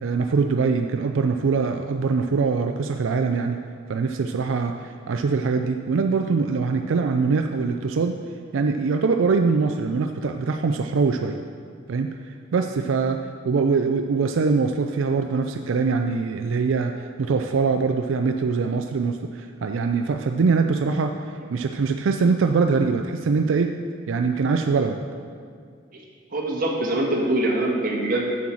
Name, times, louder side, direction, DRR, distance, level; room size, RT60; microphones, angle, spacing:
voice 1, 0.0-3.6 3.9-8.2 8.5-11.4 11.9-13.2 13.4-23.7 24.1-25.0, right 4 dB, 90° right, 5 dB, 0.4 m, -23 dB
voice 2, 26.3-28.3, right 1 dB, 45° right, -1 dB, 1.5 m, -23 dB
7.7 x 7.3 x 6.2 m, 2.2 s
head